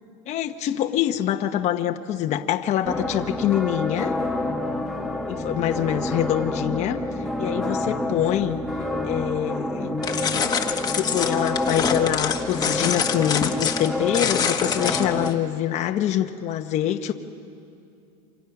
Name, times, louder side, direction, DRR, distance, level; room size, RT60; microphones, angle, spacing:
voice 1, 0.3-4.1 5.3-7.0 7.4-8.6 9.0-10.1 10.9-17.1, left 11 dB, 40° left, 5 dB, 1.0 m, -25 dB
sound 1, 2.8-15.3, left 1 dB, ahead, 1.3 m, -28 dB
sound 2, 10.0-15.3, left 7 dB, 20° left, 1.4 m, -26 dB
28.5 x 26.5 x 6.0 m, 2.5 s
supercardioid pair, 140°, 17 cm